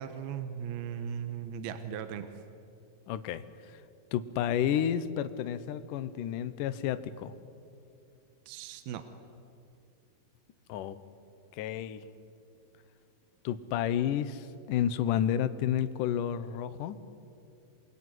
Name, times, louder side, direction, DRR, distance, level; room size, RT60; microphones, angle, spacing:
voice 1, 0.0-2.3 8.5-9.0, right 8 dB, 70° right, 9 dB, 2.8 m, -37 dB
voice 2, 3.1-3.8 4.1-7.3 10.7-11.0 11.5-12.0 13.4-17.0, left 10 dB, 70° left, 12 dB, 2.1 m, -31 dB
28.0 x 22.0 x 9.5 m, 2.6 s
omnidirectional pair, 4.9 m